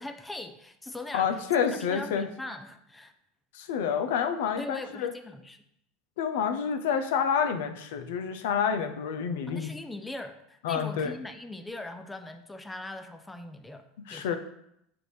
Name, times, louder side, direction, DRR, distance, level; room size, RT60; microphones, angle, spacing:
voice 1, 0.0-1.3 1.6-3.1 4.6-5.6 9.5-14.4, left 2 dB, 10° left, 8 dB, 0.4 m, -41 dB
voice 2, 1.1-2.3 3.5-5.1 6.2-9.8 10.6-11.2 14.1-14.4, left 7 dB, 75° left, 8 dB, 0.4 m, -28 dB
5.9 x 2.6 x 3.2 m, 0.76 s
hypercardioid pair, 95°, 0 cm